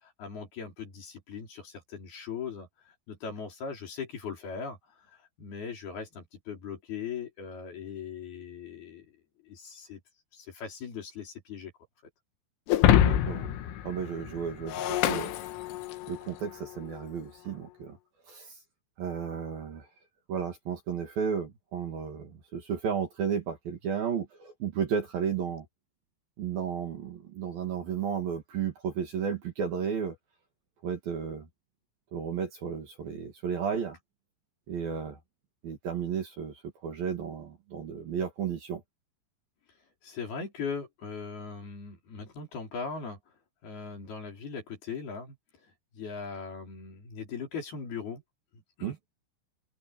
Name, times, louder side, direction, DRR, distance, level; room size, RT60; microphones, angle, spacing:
voice 1, 0.0-4.8 5.1-9.1 9.4-10.0 10.3-11.7 40.0-43.2 43.6-45.4 45.9-48.2 48.5-48.9, left 5 dB, 50° left, 6.1 m, -39 dB
Shatter, 12.7-16.2, left 11 dB, 80° left, 4.0 m, -25 dB
voice 2, 13.0-13.5 13.8-15.3 16.1-18.0 18.3-18.5 19.0-19.9 20.3-25.7 26.4-30.2 30.8-31.5 32.1-34.0 34.7-35.2 35.6-36.5 36.8-38.8 48.8-49.0, right 7 dB, 50° right, 3.7 m, -33 dB
omnidirectional pair, 6.0 m